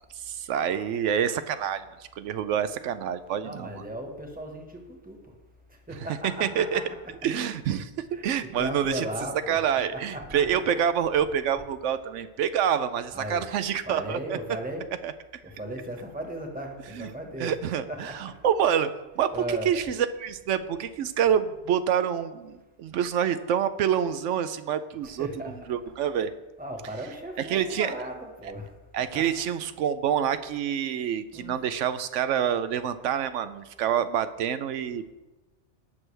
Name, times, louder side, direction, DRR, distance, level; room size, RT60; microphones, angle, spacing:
voice 1, 0.2-1.9 2.2-3.7 6.4-6.8 7.2-7.9 8.2-9.1 9.5-14.4 15.0-15.1 16.9-17.1 17.4-25.3 25.7-26.3 27.4-27.9 28.4-28.5 28.9-35.1, right 9 dB, 85° right, 11 dB, 0.9 m, -27 dB
voice 2, 3.4-5.2 5.9-6.8 8.1-10.4 13.1-13.4 13.9-14.9 15.4-17.5 17.9-18.3 19.3-19.7 25.0-25.5 26.6-28.7 29.1-29.3 31.3-31.6, right 1 dB, 5° right, 2 dB, 1.4 m, -36 dB
18.0 x 6.2 x 3.3 m, 1.1 s
omnidirectional pair, 1.2 m